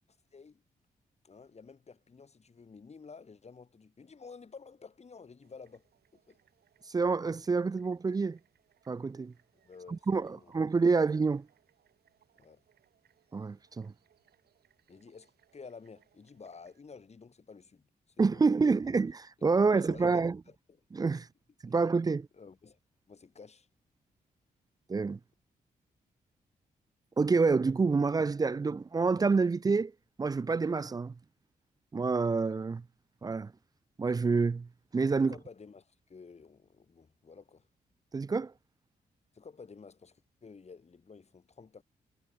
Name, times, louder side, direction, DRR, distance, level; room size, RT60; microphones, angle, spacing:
voice 1, 0.3-0.6 1.2-5.9 6.1-6.4 9.6-10.0 10.3-10.5 12.3-12.6 14.9-17.9 18.3-18.9 19.6-20.5 21.1-21.2 22.3-22.8 23.1-23.7 35.2-37.7 39.3-41.8, left 5 dB, 45° left, 3.3 m, -51 dB
sound 1, 5.4-16.8, right 10 dB, 80° right, 7.9 m, -71 dB
voice 2, 6.9-8.4 8.9-9.3 9.9-11.5 13.3-13.9 18.2-20.4 20.9-21.3 21.6-22.3 24.9-25.2 27.2-29.9 30.2-31.1 31.9-32.8 33.2-33.5 34.0-35.3 38.1-38.5, right 4 dB, 25° right, 0.4 m, -28 dB
cardioid pair, 65°, 16 cm